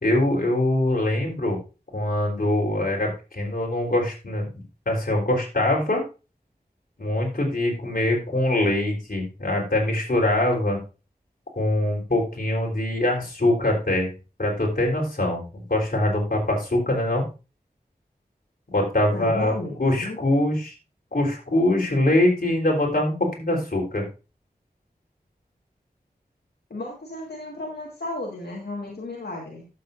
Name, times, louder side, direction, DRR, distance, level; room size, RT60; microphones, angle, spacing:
voice 1, 0.0-1.6 1.9-6.0 7.0-10.8 11.6-14.1 14.4-17.2 18.7-19.5 19.8-20.7 21.1-24.0, left 1 dB, 60° left, -1 dB, 3.7 m, -23 dB
voice 2, 19.1-20.2 26.7-29.7, left 2 dB, 90° left, -2 dB, 1.8 m, -34 dB
12.0 x 7.6 x 2.6 m, 0.31 s
wide cardioid pair, 40°, 17 cm